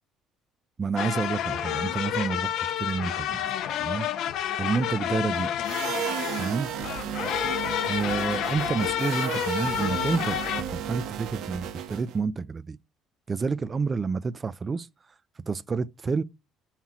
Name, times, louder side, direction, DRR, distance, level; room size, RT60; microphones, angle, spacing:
voice 1, 0.8-3.5 3.8-4.1 4.6-5.5 6.4-6.7 7.8-12.8 13.3-14.9 15.5-16.2, right 5 dB, 25° right, 0.3 m, -29 dB
sound 1, 1.0-10.6, left 10 dB, 65° left, 0.7 m, -30 dB
sound 2, 5.6-12.2, right 9 dB, 70° right, 1.1 m, -34 dB
7.2 x 5.6 x 2.9 m
cardioid pair, 135°, 0 cm